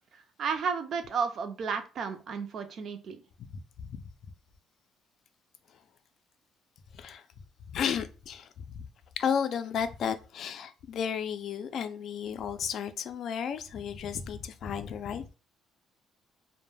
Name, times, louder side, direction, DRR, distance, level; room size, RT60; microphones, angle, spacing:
voice 1, 0.1-3.2, right 6 dB, 55° right, 0.4 m, -33 dB
voice 2, 6.9-7.2 7.7-8.5 8.7-8.9 9.2-15.3, left 7 dB, 60° left, 0.3 m, -33 dB
2.1 x 2.1 x 3.1 m
cardioid pair, 115°, 0 cm